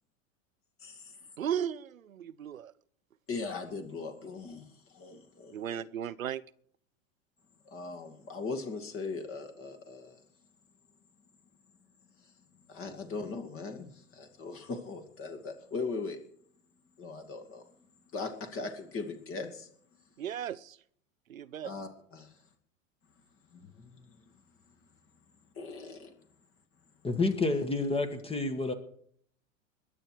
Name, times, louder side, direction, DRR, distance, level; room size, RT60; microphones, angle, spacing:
voice 1, 0.8-1.2 3.3-5.8 7.7-10.2 12.7-16.2 17.0-17.6 18.1-19.7 21.6-22.3 23.6-24.0 25.5-26.1, left 4 dB, 35° left, 5 dB, 2.4 m, -39 dB
voice 2, 1.4-2.7 5.5-6.4 20.2-20.8 21.3-21.7, right 9 dB, 85° right, 18 dB, 0.7 m, -35 dB
voice 3, 27.0-28.7, left 3 dB, 15° left, 8 dB, 1.6 m, -29 dB
21.5 x 8.3 x 4.7 m, 0.62 s
figure-of-eight pair, 85°, 39 cm